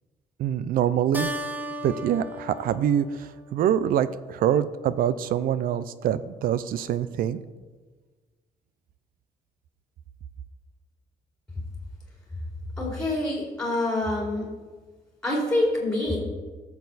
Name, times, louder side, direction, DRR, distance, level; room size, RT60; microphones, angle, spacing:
voice 1, 0.4-1.3 1.8-7.4, right 10 dB, 75° right, 15 dB, 0.6 m, -25 dB
Keyboard (musical), 1.1-4.0, equal, 10° right, 0.7 m, -36 dB
voice 2, 12.8-14.5 15.2-16.2, left 1 dB, 5° left, -3 dB, 3.1 m, -26 dB
18.0 x 7.1 x 4.1 m, 1.4 s
cardioid pair, 155°, 15 cm